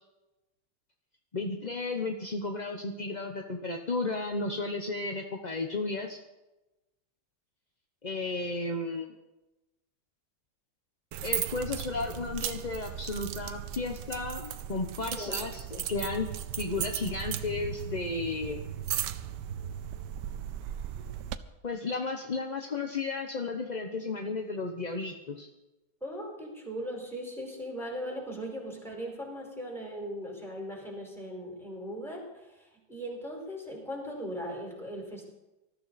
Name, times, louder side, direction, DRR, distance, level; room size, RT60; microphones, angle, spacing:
voice 1, 1.3-6.2 8.0-9.1 11.2-16.3 16.6-18.7 21.6-25.5, left 3 dB, 35° left, 3 dB, 0.7 m, -33 dB
sound 1, 11.1-21.4, right 10 dB, 70° right, 1.3 m, -36 dB
voice 2, 26.0-35.3, equal, ahead, -1 dB, 4.7 m, -39 dB
20.0 x 13.5 x 4.2 m, 1.0 s
omnidirectional pair, 2.0 m